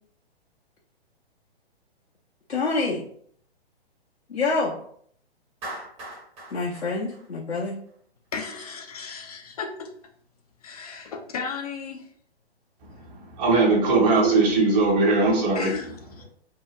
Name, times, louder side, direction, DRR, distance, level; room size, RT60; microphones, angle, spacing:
voice 1, 2.5-3.0 4.3-4.8 6.5-7.8, left 3 dB, 85° left, 0.7 m, -26 dB
Clapping, 5.6-7.9, right 1 dB, 20° right, 0.8 m, -40 dB
voice 2, 8.3-9.9 10.6-12.1 15.5-16.2, left 5 dB, 35° left, 0.4 m, -35 dB
voice 3, 13.4-15.7, right 3 dB, 35° right, 1.1 m, -19 dB
2.7 x 2.3 x 3.0 m
figure-of-eight pair, 125°, 33 cm